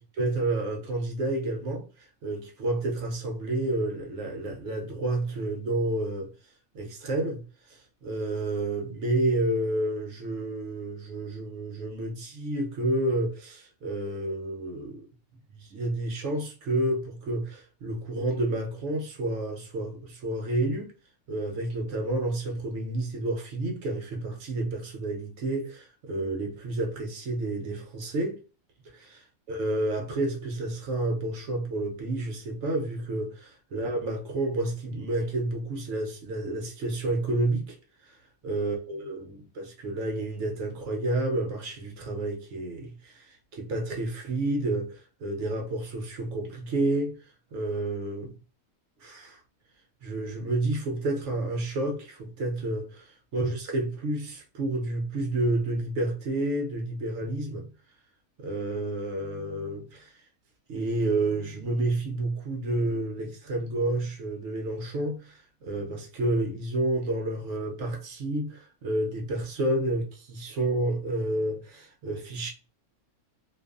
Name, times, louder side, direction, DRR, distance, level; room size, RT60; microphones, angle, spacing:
voice 1, 0.2-6.3 6.7-15.1 15.6-20.9 21.3-28.4 28.8-29.2 29.5-38.2 38.4-47.2 47.5-48.3 49.0-49.4 50.0-57.7 58.4-60.2 60.7-72.5, right 2 dB, 65° right, 0.8 m, -30 dB
2.5 x 2.4 x 2.2 m
omnidirectional pair, 1.5 m